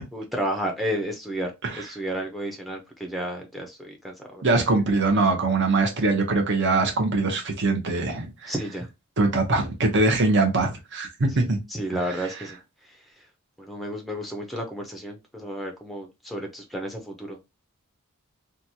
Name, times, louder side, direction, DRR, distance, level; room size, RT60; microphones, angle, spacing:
voice 1, 0.1-1.5 1.8-4.4 8.5-8.9 11.4-12.6 13.6-17.4, equal, ahead, 0.5 m, -32 dB
voice 2, 4.4-8.5 9.2-11.6 12.2-12.3, right 3 dB, 55° right, 0.8 m, -22 dB
2.9 x 2.3 x 2.6 m
head